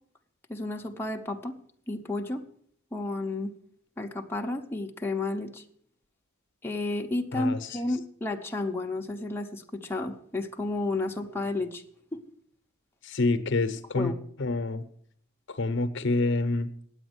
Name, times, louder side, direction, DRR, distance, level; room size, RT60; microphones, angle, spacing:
voice 1, 0.5-1.6 1.9-2.4 2.9-3.5 4.0-5.6 6.6-11.8 12.1-12.2 13.9-14.1, left 2 dB, 10° left, 1 dB, 0.8 m, -31 dB
voice 2, 13.0-14.1 14.4-14.8 15.6-16.7, left 2 dB, 60° left, 11 dB, 0.8 m, -27 dB
9.9 x 8.0 x 8.0 m, 0.64 s
head